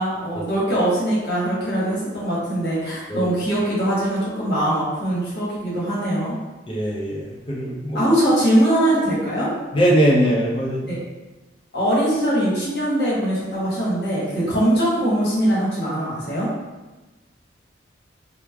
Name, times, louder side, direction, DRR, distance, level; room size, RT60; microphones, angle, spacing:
voice 1, 0.0-6.3 7.9-9.5 10.9-11.0 11.7-16.5, right 1 dB, 55° left, -8 dB, 1.1 m, -21 dB
voice 2, 6.7-8.0 9.7-11.0, equal, 25° left, -5 dB, 0.4 m, -21 dB
3.0 x 2.0 x 2.2 m, 1.2 s
head